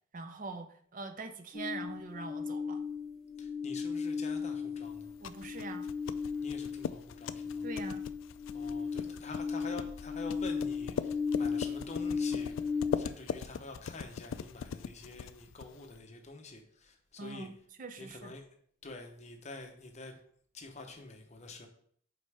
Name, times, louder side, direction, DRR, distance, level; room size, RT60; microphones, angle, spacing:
voice 1, 0.1-2.8 5.2-5.9 7.6-8.0 17.2-17.5 17.8-18.3, right 3 dB, 40° right, 8 dB, 0.5 m, -43 dB
sound 1, 1.5-13.1, left 5 dB, ahead, 1.7 m, -36 dB
voice 2, 3.4-5.1 6.4-7.7 8.5-12.5 12.9-17.5 18.0-18.4 18.8-20.2 20.5-21.7, left 2 dB, 35° left, 3 dB, 0.8 m, -47 dB
sound 2, 4.9-16.0, left 7 dB, 70° left, 0.3 m, -41 dB
5.3 x 4.3 x 4.8 m, 0.62 s
head